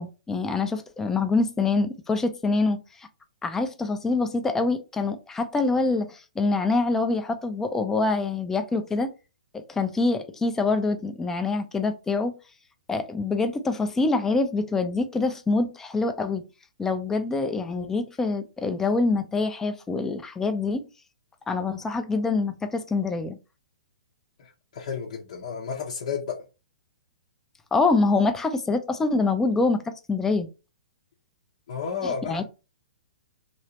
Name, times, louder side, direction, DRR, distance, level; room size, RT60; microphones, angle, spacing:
voice 1, 0.0-3.1 3.4-9.1 9.7-12.3 12.9-16.4 16.8-20.8 21.5-23.4 27.7-30.5 32.0-32.4, left 3 dB, 10° left, 0.5 m, -25 dB
voice 2, 24.4-26.4 31.7-32.4, left 6 dB, 60° left, 0.8 m, -32 dB
3.1 x 2.8 x 2.9 m
hypercardioid pair, 130°, 4 cm